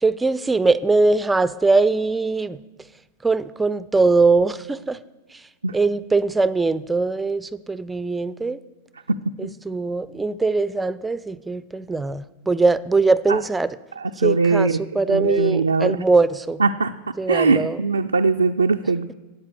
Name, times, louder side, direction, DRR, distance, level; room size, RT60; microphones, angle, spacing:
voice 1, 0.0-2.6 3.2-5.0 5.7-8.6 9.4-13.8 14.2-16.6 17.2-17.8, right 3 dB, 10° right, 17 dB, 0.4 m, -21 dB
voice 2, 14.0-14.8 15.1-16.0 16.6-16.9 17.3-19.1, right 4 dB, 75° right, 5 dB, 0.3 m, -20 dB
12.5 x 8.8 x 6.7 m, 1.1 s
figure-of-eight pair, 90°, 0 cm